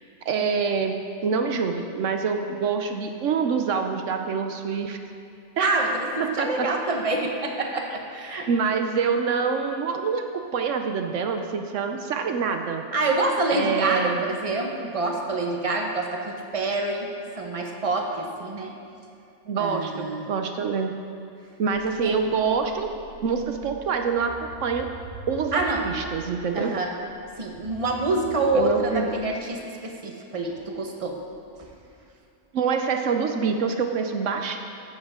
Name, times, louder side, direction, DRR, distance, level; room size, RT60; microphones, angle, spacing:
voice 1, 0.3-5.0 5.6-5.7 6.2-6.7 8.5-10.2 10.5-12.8 13.5-14.2 19.5-20.9 21.6-22.9 23.2-24.9 25.3-26.7 28.5-29.1 32.5-34.6, right 5 dB, 80° right, 5 dB, 1.1 m, -26 dB
voice 2, 5.6-8.5 12.9-17.1 17.4-18.7 19.6-20.3 22.0-22.2 25.5-25.9 26.5-26.9 27.4-31.2 31.6-31.7, right 2 dB, 30° right, 1 dB, 1.2 m, -26 dB
sound 1, 21.7-29.5 30.4-32.2, right 2 dB, 60° right, 1.4 m, -45 dB
15.0 x 10.5 x 3.7 m, 2.5 s
omnidirectional pair, 1.3 m